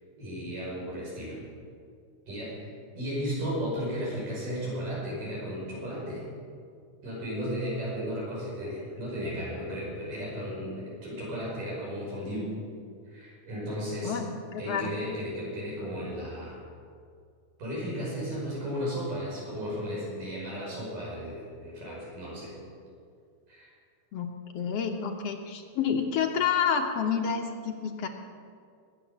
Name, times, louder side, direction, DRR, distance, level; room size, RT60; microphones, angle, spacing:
voice 1, 0.2-1.4 2.3-6.2 7.0-12.5 13.1-14.2 14.6-16.6 17.6-22.5 23.5-23.7, equal, 80° right, -5 dB, 7.1 m, -34 dB
voice 2, 14.0-14.9 24.1-24.3 24.5-28.1, left 7 dB, 70° left, 3 dB, 1.6 m, -29 dB
20.5 x 8.3 x 7.1 m, 2.3 s
omnidirectional pair, 3.7 m